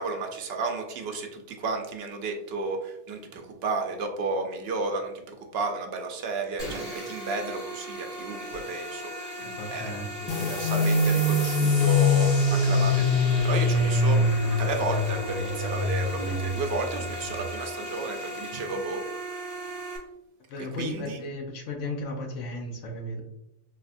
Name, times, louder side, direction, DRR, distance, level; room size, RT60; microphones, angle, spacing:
voice 1, 0.0-5.1 5.5-9.3 9.7-9.9 10.2-14.2 14.6-19.0 20.8-21.2, right 3 dB, 60° right, 4 dB, 0.7 m, -32 dB
sound 1, 6.6-20.0, equal, 25° left, 1.3 m, -37 dB
voice 2, 9.4-10.5 20.5-23.2, left 2 dB, 70° left, 3 dB, 1.0 m, -35 dB
sound 2, 10.3-17.5, left 2 dB, 50° left, 0.5 m, -24 dB
4.0 x 2.8 x 2.5 m, 0.83 s
omnidirectional pair, 1.3 m